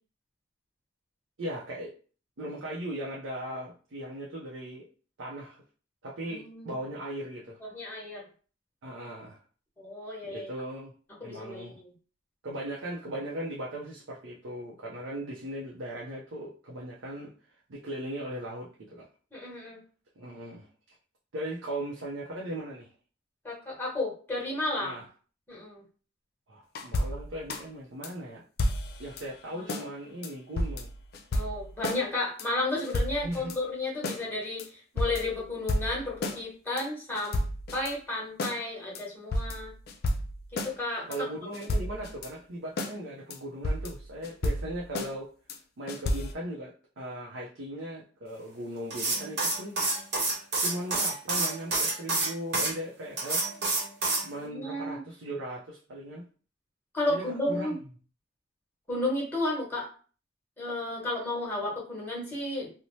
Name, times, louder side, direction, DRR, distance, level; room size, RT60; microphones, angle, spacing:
voice 1, 1.4-1.9 2.4-4.9 5.2-5.6 6.0-7.6 8.8-9.4 10.3-10.9 11.2-11.8 12.4-17.3 17.7-19.1 20.2-20.7 21.3-22.9 24.8-25.0 26.5-28.4 29.0-30.9 33.2-33.5 41.1-45.3 45.8-49.8 50.6-53.4 54.2-56.2 57.1-57.8, right 1 dB, 90° right, -4 dB, 0.5 m, -38 dB
voice 2, 6.3-6.7 7.6-8.3 9.8-10.5 11.2-11.9 19.3-19.8 23.4-25.0 25.5-25.8 29.6-29.9 31.3-37.4 37.7-39.7 40.6-41.3 54.4-55.0 56.9-57.8 58.9-59.9 60.6-62.7, left 2 dB, 10° left, -4 dB, 1.0 m, -33 dB
sound 1, 26.8-27.6 28.0-28.1 28.6-29.3 29.7-29.9 30.2-32.0 32.4-32.5 32.8-33.6 34.0-34.2 34.6-34.7 35.0-36.4 36.8-36.9 37.1-37.9 38.4-38.6 38.9-39.0 39.3-40.7 41.1-41.2 41.5-42.3 42.8-42.9 43.3-43.4 43.6-45.1 45.5-45.6 45.9-46.3, left 1 dB, 55° left, 0.4 m, -32 dB
sound 2, 48.9-52.7 53.2-54.2, right 2 dB, 60° right, 1.0 m, -28 dB
2.7 x 2.0 x 3.0 m, 0.40 s
head